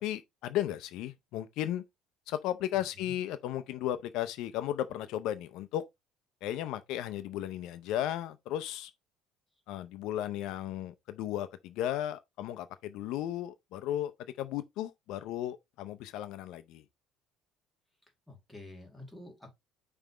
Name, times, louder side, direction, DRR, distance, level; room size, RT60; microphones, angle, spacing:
voice 1, 0.0-1.8 2.3-5.8 6.4-8.9 9.7-14.1 14.4-16.8, left 12 dB, 65° left, 0.6 m, -35 dB
voice 2, 2.7-3.1 18.3-19.5, left 2 dB, ahead, 2.1 m, -49 dB
5.6 x 3.4 x 5.1 m
cardioid pair, 155°, 0 cm